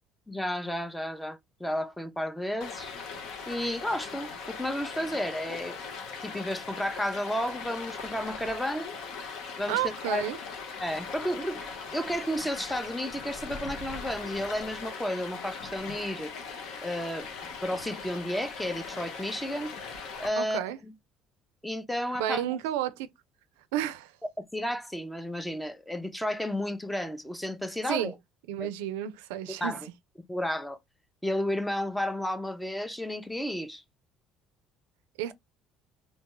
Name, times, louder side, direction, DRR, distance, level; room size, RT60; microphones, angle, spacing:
voice 1, 0.3-2.9 3.5-5.8 6.2-8.9 9.6-10.2 10.8-11.7 11.9-16.3 16.8-17.3 17.6-19.7 20.2-20.6 21.6-22.6 24.5-28.1 28.6-28.7 29.6-29.8 30.3-30.8 31.2-33.8, equal, 5° left, 0.5 m, -32 dB
Stream, 2.6-20.3, left 5 dB, 70° left, 0.8 m, -40 dB
voice 2, 9.7-10.4 20.4-20.8 22.2-23.1 23.7-24.2 27.9-28.1 28.5-29.9 35.2-35.3, right 12 dB, 85° right, 0.3 m, -31 dB
2.6 x 2.2 x 2.9 m
supercardioid pair, 75°, 0 cm